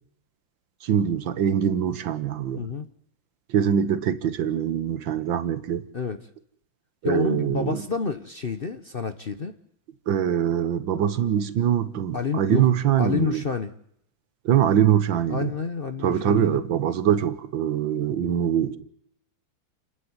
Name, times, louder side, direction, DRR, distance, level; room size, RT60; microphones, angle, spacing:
voice 1, 0.8-2.7 3.5-5.8 7.0-7.8 10.1-13.4 14.5-15.5 16.0-18.8, right 9 dB, 70° right, 1.7 m, -23 dB
voice 2, 2.6-2.9 5.9-6.2 7.0-9.5 12.1-13.7 15.3-16.6, left 5 dB, 45° left, 0.7 m, -29 dB
29.5 x 9.9 x 9.6 m
omnidirectional pair, 2.2 m